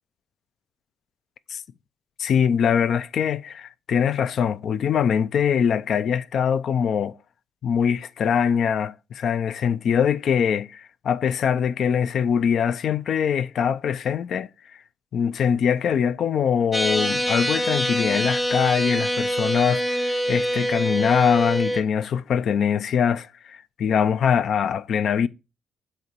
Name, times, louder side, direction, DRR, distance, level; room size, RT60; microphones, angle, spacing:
voice 1, 2.2-7.2 7.6-14.5 15.1-25.3, left 7 dB, 60° left, 0.4 m, -23 dB
sound 1, 16.7-21.8, equal, 5° left, 0.7 m, -25 dB
7.9 x 2.9 x 4.5 m
cardioid pair, 90°, 0 cm